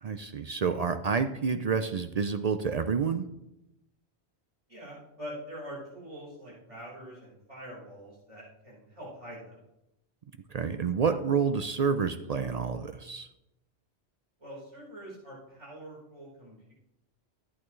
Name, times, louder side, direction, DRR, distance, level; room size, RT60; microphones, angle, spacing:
voice 1, 0.0-3.3 10.5-13.3, right 6 dB, 55° right, 9 dB, 0.4 m, -29 dB
voice 2, 4.7-9.6 14.4-16.7, equal, 30° right, -7 dB, 4.3 m, -44 dB
13.5 x 8.5 x 3.1 m, 0.88 s
omnidirectional pair, 1.1 m